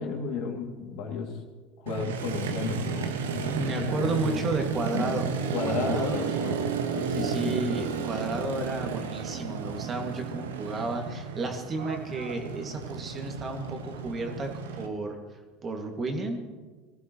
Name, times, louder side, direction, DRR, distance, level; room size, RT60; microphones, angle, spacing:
voice 1, 0.0-1.4 1.8-4.4 4.9-5.0 5.5-6.7 6.9-7.6, left 5 dB, 55° left, 1 dB, 2.6 m, -33 dB
Motorcycle, 1.9-14.9, right 6 dB, 75° right, 1.2 m, -32 dB
voice 2, 3.5-5.2 5.6-6.3 7.1-14.5 14.8-15.2 15.6-16.4, right 2 dB, 30° right, 3 dB, 2.1 m, -32 dB
20.5 x 15.0 x 3.1 m, 1.4 s
figure-of-eight pair, 75°, 0 cm